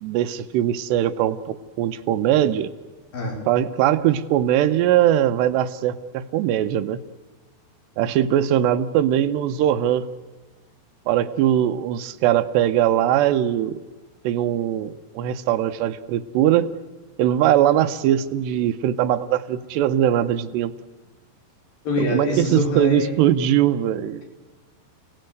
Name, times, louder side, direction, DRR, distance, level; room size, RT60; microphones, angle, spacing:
voice 1, 0.0-2.7 3.5-7.0 8.0-10.1 11.1-13.8 14.2-16.7 17.2-20.7 22.0-24.2, right 11 dB, 85° right, 10 dB, 3.1 m, -21 dB
voice 2, 21.8-23.2, left 1 dB, 60° left, 0 dB, 6.3 m, -24 dB
29.5 x 18.0 x 8.0 m, 1.4 s
omnidirectional pair, 4.8 m